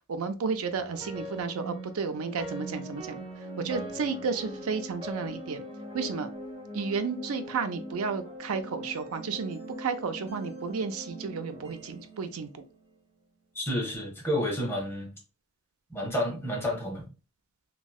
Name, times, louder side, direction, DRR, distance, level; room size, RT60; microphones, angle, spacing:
voice 1, 0.1-3.2 3.6-5.6 5.9-6.3 6.7-12.6, right 5 dB, 85° right, 0.5 m, -32 dB
sound 1, 0.7-13.0, right 1 dB, 25° right, 0.8 m, -41 dB
voice 2, 13.5-15.1 15.9-17.0, left 1 dB, 10° left, 1.1 m, -30 dB
3.1 x 2.6 x 2.3 m
head